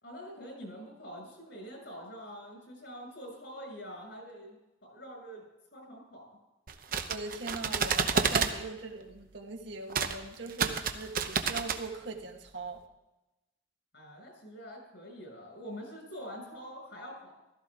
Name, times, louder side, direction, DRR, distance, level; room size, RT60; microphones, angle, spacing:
voice 1, 0.0-5.4 5.7-6.4 13.9-17.4, equal, 65° left, 1 dB, 6.1 m, -45 dB
sound 1, 6.7-8.5 9.9-10.1 10.5-11.8, right 5 dB, 45° right, 0.8 m, -29 dB
voice 2, 7.1-12.8, right 3 dB, 65° right, 3 dB, 1.5 m, -40 dB
15.5 x 14.0 x 3.6 m, 0.98 s
head